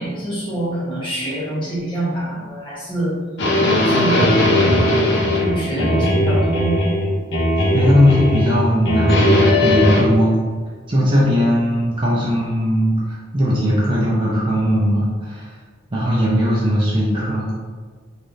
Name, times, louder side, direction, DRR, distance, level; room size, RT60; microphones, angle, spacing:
voice 1, 0.0-3.2 3.7-4.5 5.3-6.8, right 1 dB, 25° left, -9 dB, 1.0 m, -25 dB
sound 1, 3.4-7.1 7.3-8.6 8.9-10.0, left 1 dB, 60° left, 0.6 m, -17 dB
voice 2, 7.7-10.4 10.9-15.5 15.9-17.5, equal, 25° right, -6 dB, 0.5 m, -18 dB
3.3 x 2.4 x 2.6 m, 1.5 s
head